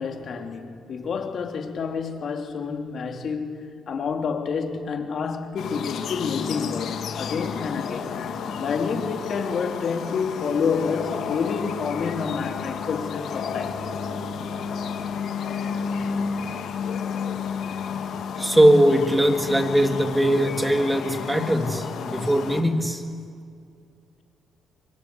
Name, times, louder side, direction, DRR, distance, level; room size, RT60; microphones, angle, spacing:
voice 1, 0.0-8.1 8.6-13.9, left 5 dB, 55° left, 3.2 m, -28 dB
sound 1, 5.6-22.6, left 6 dB, 70° left, 2.5 m, -31 dB
voice 2, 18.4-23.0, equal, 10° right, 2.9 m, -20 dB
26.0 x 23.5 x 9.8 m
cardioid pair, 90°, 0 cm